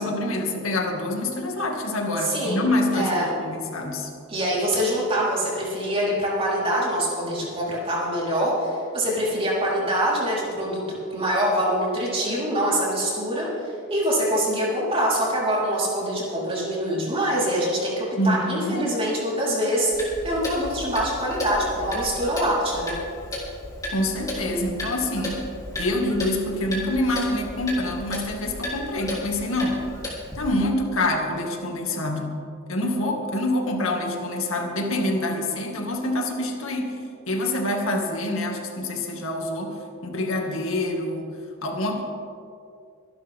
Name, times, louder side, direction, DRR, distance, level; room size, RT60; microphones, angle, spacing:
voice 1, 0.0-4.1 18.2-18.9 23.9-25.5 25.8-29.9 30.3-32.4 32.7-37.0 37.3-41.3 41.6-42.0, left 1 dB, 85° left, 1 dB, 2.2 m, -26 dB
voice 2, 2.2-2.7 2.9-3.3 4.3-23.0, equal, 30° right, -6 dB, 4.2 m, -24 dB
Clock, 19.9-30.5, left 1 dB, 15° left, 3.4 m, -34 dB
24.5 x 11.5 x 3.7 m, 2.4 s
head